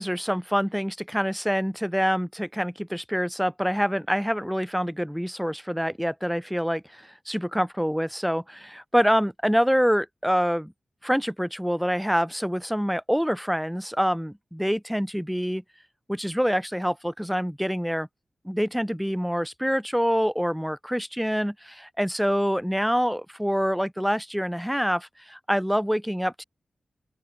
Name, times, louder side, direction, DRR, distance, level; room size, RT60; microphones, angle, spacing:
voice 1, 0.0-10.7 11.0-15.6 16.1-18.1 18.4-26.4, equal, ahead, 6.4 m, -26 dB
open air
cardioid pair, 75°, 0 cm